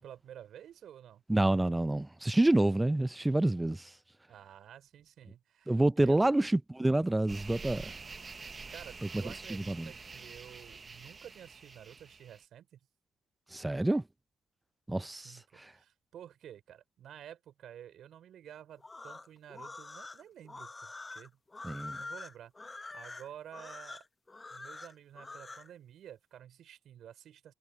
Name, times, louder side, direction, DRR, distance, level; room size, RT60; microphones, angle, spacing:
voice 1, 0.0-1.2 4.3-6.3 8.7-12.8 15.1-21.4 22.0-24.0 24.5-27.5, right 10 dB, 60° right, 5.5 m, -51 dB
voice 2, 1.3-3.9 5.7-7.9 9.5-9.9 13.5-14.0 14.9-15.3 21.6-22.0, right 1 dB, 10° right, 0.6 m, -28 dB
sound 1, 7.3-12.4, right 4 dB, 35° right, 1.1 m, -47 dB
sound 2, 18.8-25.7, left 3 dB, 20° left, 1.4 m, -46 dB
supercardioid pair, 70°, 0 cm